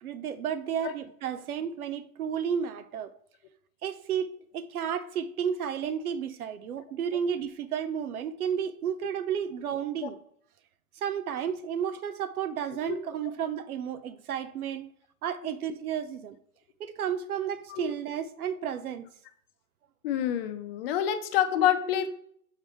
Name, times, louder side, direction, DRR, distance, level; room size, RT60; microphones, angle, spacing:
voice 1, 0.0-3.1 3.8-10.2 11.0-14.9 15.2-16.4 16.8-19.1, right 8 dB, 70° right, 0.9 m, -32 dB
voice 2, 20.0-22.1, left 10 dB, 40° left, 0.9 m, -27 dB
7.4 x 3.7 x 4.6 m
hypercardioid pair, 130°, 45 cm